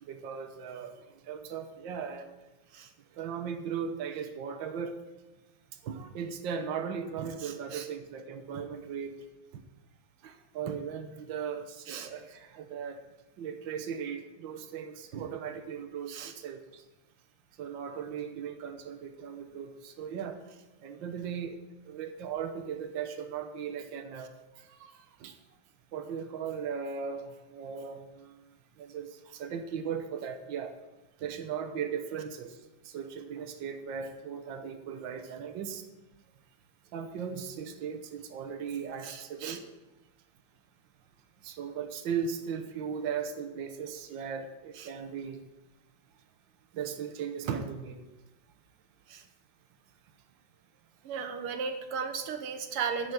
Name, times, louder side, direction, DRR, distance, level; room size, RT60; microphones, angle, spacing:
voice 1, 0.0-0.9 1.3-2.3 3.1-4.9 5.8-9.1 9.5-9.6 10.2-13.0 13.4-16.8 17.6-20.4 20.8-21.6 21.9-24.3 25.2-25.3 25.9-28.4 28.8-30.8 31.2-32.5 32.8-35.8 36.9-39.7 41.4-45.4 46.7-48.0, right 7 dB, 65° right, 6 dB, 1.7 m, -37 dB
voice 2, 7.4-7.9 11.9-12.1 16.1-16.3 24.8-24.9 39.0-39.6 44.8-44.9 49.1-49.2 51.0-53.1, right 6 dB, 85° right, 7 dB, 2.0 m, -36 dB
11.0 x 7.3 x 8.0 m, 1.1 s
omnidirectional pair, 2.4 m